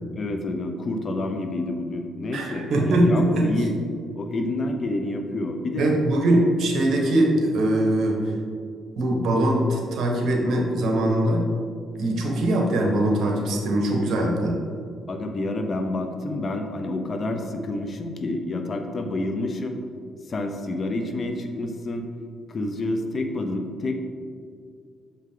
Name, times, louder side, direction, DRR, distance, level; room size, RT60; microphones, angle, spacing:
voice 1, 0.2-3.8 4.2-5.9 15.1-19.8 20.3-22.1 22.5-23.9, left 2 dB, 45° left, 5 dB, 0.7 m, -28 dB
voice 2, 2.3-3.5 5.8-8.2 9.0-11.5 12.0-14.6, right 1 dB, 70° right, 0 dB, 1.3 m, -22 dB
6.9 x 5.0 x 3.8 m, 2.2 s
cardioid pair, 90°, 0 cm